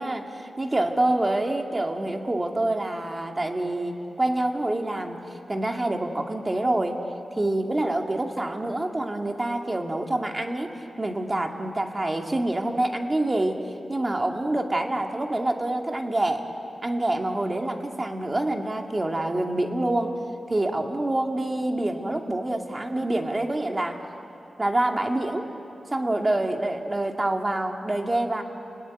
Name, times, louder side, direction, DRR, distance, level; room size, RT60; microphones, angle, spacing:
voice 1, 0.0-5.2 5.5-7.0 7.4-13.6 13.9-16.5 16.8-20.1 20.5-24.0 24.6-25.5 25.9-28.4, right 1 dB, 25° right, 3 dB, 2.2 m, -26 dB
30.0 x 19.0 x 9.6 m, 2.8 s
wide cardioid pair, 95°, 0 cm